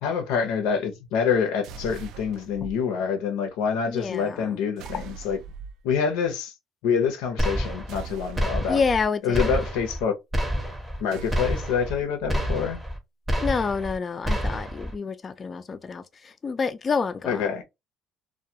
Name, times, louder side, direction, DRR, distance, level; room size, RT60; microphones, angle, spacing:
voice 1, 0.0-5.4 5.8-6.5 6.8-8.8 9.2-10.2 11.0-12.8 17.2-17.6, left 6 dB, 90° left, 0.6 m, -26 dB
sound 1, 1.6-2.7 4.8-5.8 7.9-9.0 11.1-12.5, right 5 dB, 75° right, 0.3 m, -40 dB
voice 2, 3.9-4.6 4.9-5.0 8.7-9.6 13.4-17.5, left 5 dB, 35° left, 0.4 m, -28 dB
sound 2, 7.4-8.1 8.4-9.1 9.3-10.0 10.3-11.0 11.3-12.0 12.3-13.0 13.3-14.0 14.3-14.9, equal, 10° right, 0.7 m, -28 dB
2.2 x 2.2 x 2.7 m
cardioid pair, 100°, 0 cm